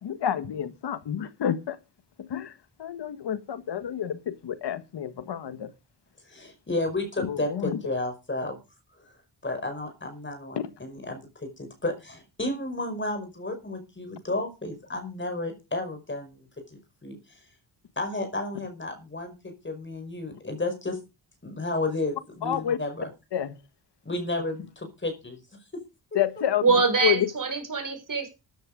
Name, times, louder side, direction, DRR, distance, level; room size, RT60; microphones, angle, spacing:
voice 1, 0.0-1.8 2.3-2.5 2.8-5.7 7.2-7.8 22.4-22.8 23.3-23.5 26.1-26.6 27.0-27.3, left 9 dB, 75° left, 1.5 m, -29 dB
voice 2, 6.3-8.6 9.4-16.5 16.7-17.2 18.0-21.0 21.4-23.1 24.0-25.4, left 2 dB, 25° left, 5.0 m, -32 dB
voice 3, 26.6-28.3, right 4 dB, 50° right, 5.8 m, -24 dB
13.5 x 11.0 x 5.1 m
cardioid pair, 85°, 41 cm